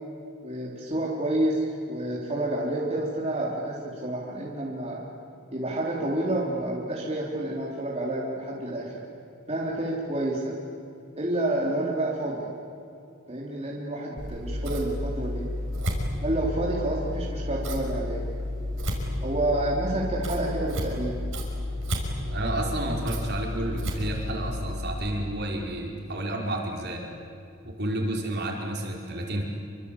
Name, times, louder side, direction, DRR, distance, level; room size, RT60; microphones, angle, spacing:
voice 1, 0.4-5.0 5.5-8.9 9.5-10.5 11.2-12.5 13.3-15.5 16.2-18.2 19.2-21.2, right 1 dB, 30° right, -4 dB, 3.7 m, -29 dB
Scissors, 14.2-24.9, left 1 dB, 70° right, 5.6 m, -31 dB
voice 2, 22.3-27.1 27.6-29.4, right 1 dB, 55° right, 0 dB, 5.0 m, -30 dB
28.0 x 25.0 x 8.7 m, 2.6 s
head